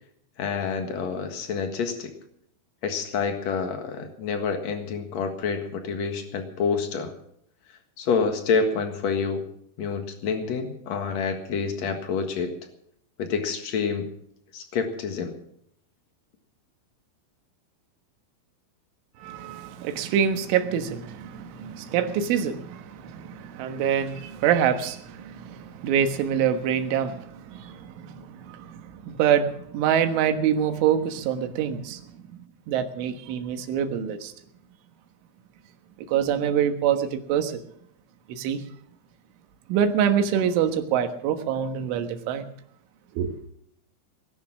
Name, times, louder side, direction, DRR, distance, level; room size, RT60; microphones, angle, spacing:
voice 1, 0.4-2.1 2.8-7.1 8.0-9.4 9.8-12.5 13.2-14.1 14.5-15.3, left 5 dB, 70° left, 6 dB, 1.6 m, -28 dB
voice 2, 19.2-32.4 32.7-34.3 36.0-37.6 38.3-38.6 39.7-42.5 43.2-43.4, right 8 dB, 75° right, 7 dB, 3.7 m, -25 dB
19.5 x 11.5 x 6.1 m, 0.70 s
omnidirectional pair, 5.8 m